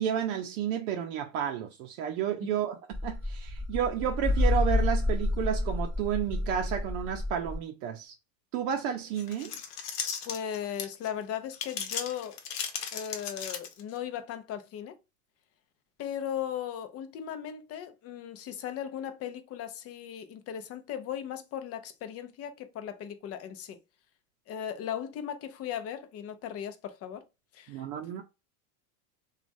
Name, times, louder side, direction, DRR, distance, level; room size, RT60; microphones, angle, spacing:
voice 1, 0.0-2.8 3.0-8.1 8.5-9.6 27.7-28.2, right 8 dB, 65° right, 0.6 m, -31 dB
sound 1, 2.9-7.6, left 2 dB, 5° right, 0.8 m, -29 dB
sound 2, 9.2-11.1 11.5-14.0, left 7 dB, 85° left, 0.8 m, -36 dB
voice 2, 10.3-12.4 12.9-15.0 16.0-23.8 24.5-27.2 27.5-28.2, left 9 dB, 35° left, 0.5 m, -37 dB
3.0 x 2.3 x 2.5 m
supercardioid pair, 115°, 45 cm